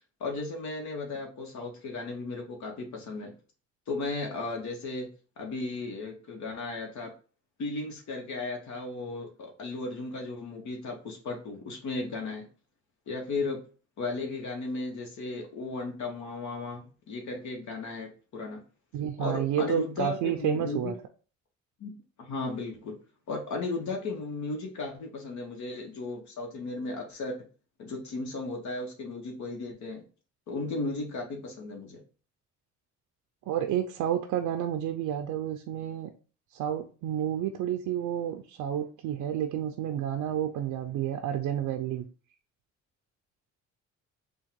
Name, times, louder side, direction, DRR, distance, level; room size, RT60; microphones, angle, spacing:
voice 1, 0.2-3.3 3.9-5.1 5.4-7.1 7.6-12.5 13.1-13.6 14.0-18.6 19.2-20.9 21.8-21.9 22.2-22.9 23.3-27.4 27.8-30.0 30.5-32.0, left 3 dB, 70° left, 2 dB, 1.1 m, -35 dB
voice 2, 18.9-20.9 33.5-36.1 36.5-42.1, right 10 dB, 85° right, 5 dB, 0.5 m, -30 dB
3.6 x 2.3 x 4.5 m, 0.37 s
cardioid pair, 90°, 30 cm